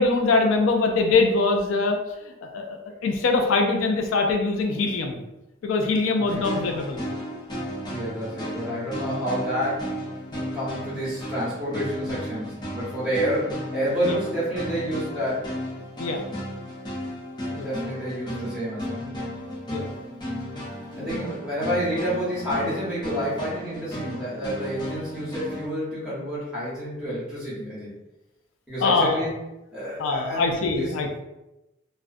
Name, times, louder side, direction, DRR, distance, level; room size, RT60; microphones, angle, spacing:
voice 1, 0.0-2.0 2.4-5.2 5.6-7.0 14.0-14.2 16.0-16.2 17.6-17.7 19.7-19.8 21.0-21.1 28.8-29.3 30.0-31.2, left 3 dB, 85° left, 3 dB, 0.3 m, -23 dB
voice 2, 6.2-6.5 7.9-9.9 10.3-15.5 17.5-19.1 20.9-27.9 28.7-29.3 29.7-30.9, equal, 5° right, -10 dB, 1.0 m, -29 dB
sound 1, 6.3-25.7, equal, 20° left, 0.5 m, -34 dB
2.4 x 2.1 x 2.4 m, 0.94 s
head